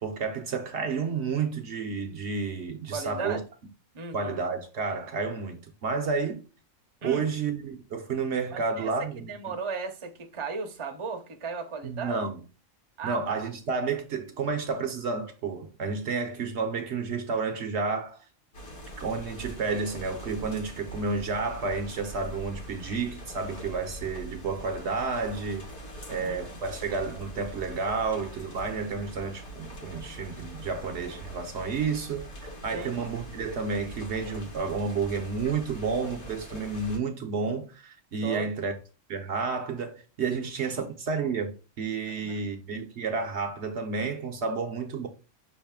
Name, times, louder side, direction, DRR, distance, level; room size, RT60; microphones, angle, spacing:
voice 1, 0.0-3.4 4.1-6.4 7.0-9.6 11.8-12.4 13.0-18.2 19.0-25.7 26.1-38.7 39.1-45.1, right 4 dB, 60° right, 0.9 m, -31 dB
voice 2, 2.9-3.4 3.9-4.4 7.0-7.3 8.5-12.2 13.0-13.4 26.1-26.4 32.7-33.0 38.2-38.5 42.2-42.4, right 5 dB, 30° right, 0.6 m, -36 dB
sound 1, 18.5-37.0, right 1 dB, 55° left, 1.6 m, -43 dB
6.0 x 2.5 x 3.6 m
omnidirectional pair, 1.4 m